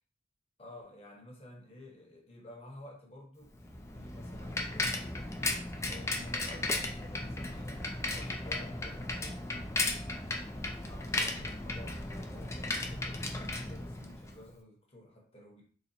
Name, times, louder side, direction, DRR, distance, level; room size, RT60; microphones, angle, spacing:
voice 1, 0.6-5.5 5.8-9.4 10.8-15.6, left 1 dB, 30° left, -1 dB, 1.0 m, -52 dB
Bicycle, 3.5-14.4, left 2 dB, 15° left, 0.4 m, -35 dB
4.1 x 2.1 x 4.0 m, 0.43 s
head